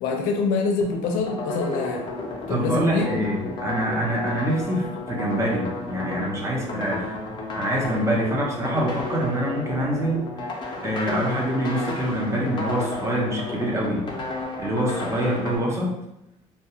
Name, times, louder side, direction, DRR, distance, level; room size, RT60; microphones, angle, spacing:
voice 1, 0.0-2.1 2.5-3.1, left 4 dB, 85° left, 2 dB, 0.5 m, -25 dB
sound 1, 0.8-15.6, left 2 dB, 35° left, 0.5 m, -32 dB
voice 2, 2.5-7.1 7.6-10.3 10.8-14.1 14.6-15.9, right 1 dB, 20° right, -3 dB, 0.6 m, -25 dB
2.2 x 2.1 x 2.8 m, 0.87 s
cardioid pair, 120°, 13 cm